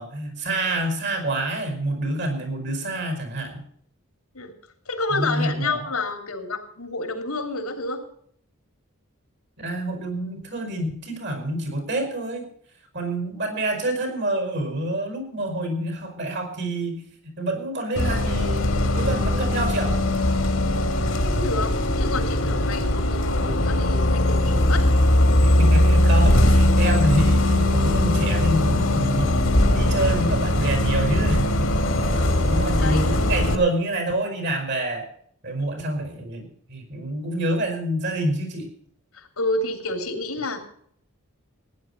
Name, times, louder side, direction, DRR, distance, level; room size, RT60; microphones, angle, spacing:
voice 1, 0.0-3.6 5.1-5.9 9.6-12.4 12.9-18.6 18.9-20.0 22.4-22.6 25.4-35.0 35.4-38.7, right 1 dB, 50° right, 5 dB, 5.0 m, -27 dB
voice 2, 4.9-8.0 20.7-24.8 32.1-32.5 32.8-33.1 39.1-40.6, left 2 dB, 85° left, 5 dB, 3.2 m, -30 dB
Bus, 18.0-33.6, left 1 dB, 65° left, 2.2 m, -20 dB
16.0 x 10.5 x 5.6 m, 0.63 s
head